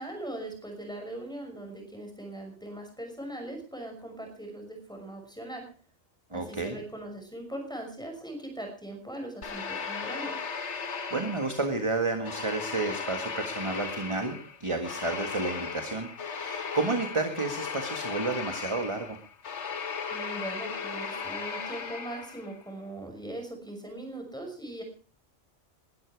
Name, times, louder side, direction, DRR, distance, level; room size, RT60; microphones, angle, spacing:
voice 1, 0.0-5.6 6.3-10.3 20.1-24.8, right 1 dB, 5° left, 3 dB, 6.2 m, -40 dB
voice 2, 6.3-6.8 11.1-19.2, right 3 dB, 25° right, 6 dB, 1.8 m, -31 dB
sound 1, 9.4-11.8 12.2-22.6, left 5 dB, 70° left, 1.7 m, -36 dB
21.0 x 12.5 x 4.7 m, 0.40 s
omnidirectional pair, 1.2 m